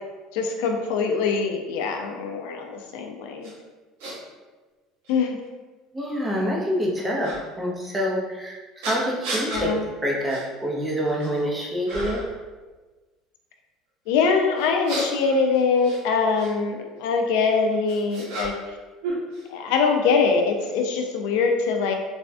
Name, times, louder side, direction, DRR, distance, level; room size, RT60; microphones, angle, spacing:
voice 1, 0.3-3.5 5.1-5.4 9.5-9.8 14.1-18.5 19.5-21.9, left 5 dB, 80° left, 3 dB, 0.3 m, -23 dB
sound 1, 3.4-3.5 4.0-4.2 5.0-5.1 7.2-7.4 8.8-9.7 10.3-10.5 10.9-11.4 11.9-12.4 14.6-16.5 17.5-18.8 19.0-19.9, right 2 dB, 85° right, 0.7 m, -33 dB
voice 2, 5.9-9.7 10.0-12.2, equal, 10° right, -3 dB, 0.5 m, -26 dB
3.3 x 2.1 x 2.5 m, 1.3 s
cardioid pair, 145°, 0 cm